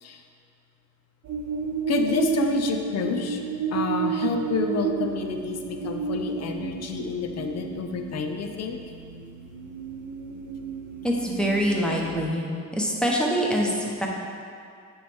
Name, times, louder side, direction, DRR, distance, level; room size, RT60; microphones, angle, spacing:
sound 1, 1.2-12.1, right 6 dB, 75° right, 0.7 m, -32 dB
voice 1, 1.9-3.4 3.7-8.8, left 4 dB, 60° left, 5 dB, 0.7 m, -28 dB
voice 2, 11.0-12.4 12.7-14.1, equal, 5° left, -2 dB, 1.0 m, -24 dB
9.0 x 3.2 x 3.5 m, 2.3 s
cardioid pair, 90°, 30 cm